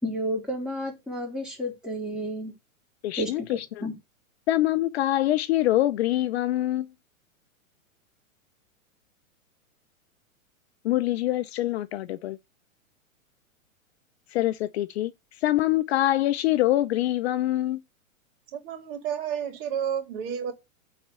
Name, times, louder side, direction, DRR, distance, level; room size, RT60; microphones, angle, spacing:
voice 1, 0.0-2.5 3.1-3.9, equal, ahead, 4.2 m, -31 dB
voice 2, 3.0-3.8 4.5-6.9 10.8-12.4 14.3-15.1 15.4-17.8, left 14 dB, 50° left, 0.7 m, -24 dB
voice 3, 18.5-20.5, right 8 dB, 45° right, 3.0 m, -31 dB
9.1 x 4.3 x 6.8 m
hypercardioid pair, 125°, 41 cm